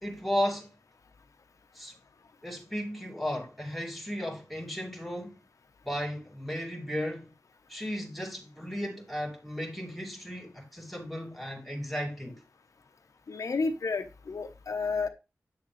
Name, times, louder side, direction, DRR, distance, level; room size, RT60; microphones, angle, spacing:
voice 1, 0.0-0.7 1.7-1.9 2.4-5.4 5.8-7.3 7.7-12.4, equal, ahead, 2.5 m, -35 dB
voice 2, 13.3-15.1, left 4 dB, 75° left, 0.9 m, -31 dB
8.5 x 6.5 x 3.2 m
wide cardioid pair, 100°, 6 cm